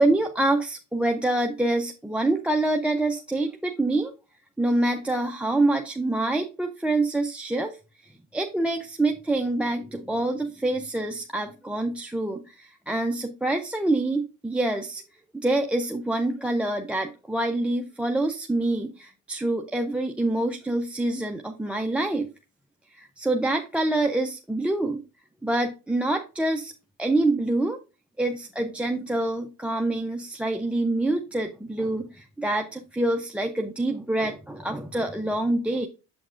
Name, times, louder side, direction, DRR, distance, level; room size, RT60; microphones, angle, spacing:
voice 1, 0.0-4.1 4.6-7.8 8.0-15.0 15.3-22.3 22.9-25.0 25.4-26.7 27.0-27.8 28.2-35.9, right 2 dB, 5° right, 6 dB, 0.4 m, -26 dB
7.3 x 5.8 x 2.5 m, 0.31 s
supercardioid pair, 85°, 39 cm